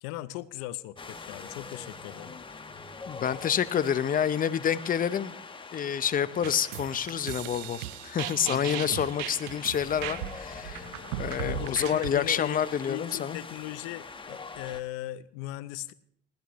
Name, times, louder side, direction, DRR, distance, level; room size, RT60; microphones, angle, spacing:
voice 1, 0.0-2.3 8.4-9.0 11.4-15.9, left 15 dB, 80° left, 17 dB, 0.6 m, -39 dB
Wind, 1.0-14.8, left 4 dB, 25° left, 1.3 m, -44 dB
voice 2, 3.1-5.3 5.7-10.9 11.2-13.4, left 8 dB, 40° left, 15 dB, 0.7 m, -28 dB
sound 1, 6.4-12.1, right 16 dB, 85° right, 0.5 m, -38 dB
19.5 x 13.0 x 3.1 m, 0.69 s
supercardioid pair, 70°, 21 cm